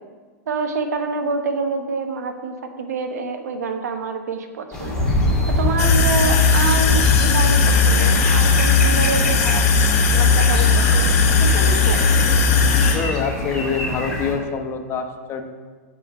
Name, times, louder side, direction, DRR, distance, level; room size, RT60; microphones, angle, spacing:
voice 1, 0.5-5.1 5.5-9.6 10.1-12.0, right 4 dB, 90° right, 6 dB, 1.2 m, -27 dB
sound 1, 4.7-14.3, left 1 dB, 10° left, 2.6 m, -25 dB
sound 2, 5.8-12.9, left 4 dB, 60° left, 1.8 m, -16 dB
voice 2, 12.9-15.5, left 5 dB, 30° left, 6 dB, 1.0 m, -26 dB
10.0 x 5.0 x 7.0 m, 1.5 s
hypercardioid pair, 135°, 9 cm